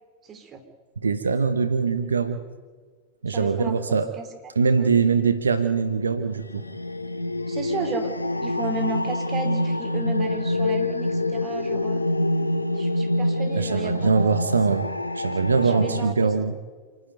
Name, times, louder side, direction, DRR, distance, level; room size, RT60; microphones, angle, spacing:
voice 1, 0.2-0.6 3.3-3.8 4.2-4.3 4.8-4.9 7.5-12.0 12.7-14.4 15.6-16.3, right 3 dB, 30° right, 6 dB, 3.5 m, -34 dB
voice 2, 1.0-2.4 3.2-4.1 4.6-6.6 13.6-14.9 15.1-16.5, right 5 dB, 80° right, 10 dB, 1.0 m, -22 dB
sound 1, 5.9-16.1, left 1 dB, 90° left, 0.8 m, -26 dB
28.0 x 11.0 x 9.2 m, 1.5 s
figure-of-eight pair, 90°, 0 cm